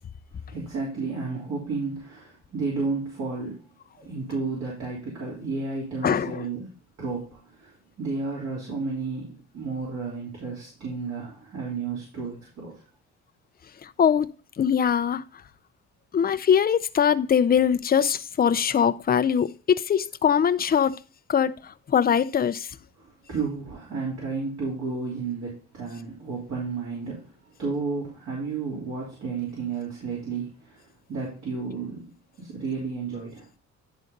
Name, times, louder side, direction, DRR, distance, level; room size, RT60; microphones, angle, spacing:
voice 1, 0.5-3.6 3.9-12.8 22.9-32.1 32.4-33.5, right 4 dB, 65° right, 3.3 m, -32 dB
voice 2, 6.0-6.4 13.8-14.3 14.6-15.2 16.1-21.0 21.3-21.5 21.9-22.7, left 8 dB, 30° left, 0.5 m, -22 dB
10.5 x 4.0 x 3.9 m
cardioid pair, 90°, 30 cm